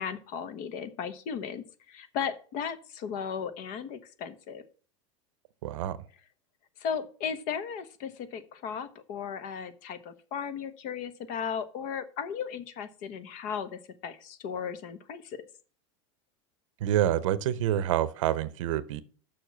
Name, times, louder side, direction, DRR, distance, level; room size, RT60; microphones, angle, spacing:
voice 1, 0.0-4.6 6.8-15.4, left 7 dB, 60° left, 1.2 m, -36 dB
voice 2, 5.6-6.0 16.8-19.0, right 11 dB, 85° right, 0.8 m, -27 dB
6.9 x 6.1 x 7.3 m
supercardioid pair, 120°, 16 cm